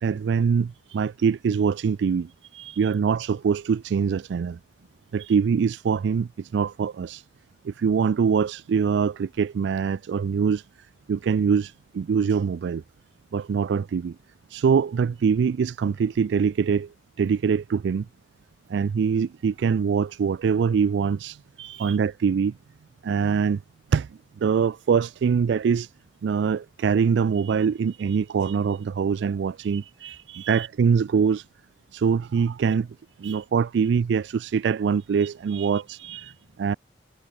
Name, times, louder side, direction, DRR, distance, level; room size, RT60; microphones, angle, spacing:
voice 1, 0.0-2.3 2.8-4.6 5.1-7.2 7.6-10.7 11.1-12.8 13.3-14.2 14.5-18.1 18.7-21.4 21.8-22.6 23.0-23.6 23.9-25.9 26.2-29.8 30.5-31.5 31.9-32.9 33.2-36.0 36.6-36.7, right 6 dB, 65° right, 0.3 m, -23 dB
voice 2, 2.5-2.9 5.2-5.3 21.6-22.0 27.4-27.7 28.1-28.2 28.4-28.6 29.6-30.7 33.2-33.4 35.2-36.6, right 12 dB, 80° right, 1.4 m, -43 dB
head